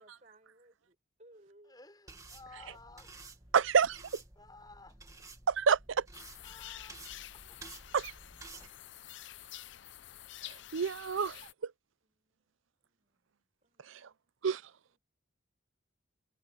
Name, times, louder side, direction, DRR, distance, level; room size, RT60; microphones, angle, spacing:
voice 1, 0.0-1.8 12.0-13.3 13.6-14.4 14.9-15.0, right 1 dB, 35° right, 7.3 m, -63 dB
voice 2, 1.6-3.3 4.3-5.0 6.4-7.8, left 3 dB, 20° left, 5.1 m, -55 dB
sound 1, 2.1-8.7, right 3 dB, 15° right, 1.9 m, -53 dB
voice 3, 3.5-4.0 5.5-6.0 7.9-8.1 10.7-11.7 13.9-14.0 14.4-14.6, right 6 dB, 75° right, 0.5 m, -28 dB
sound 2, 6.1-11.5, left 13 dB, 65° left, 0.6 m, -49 dB
head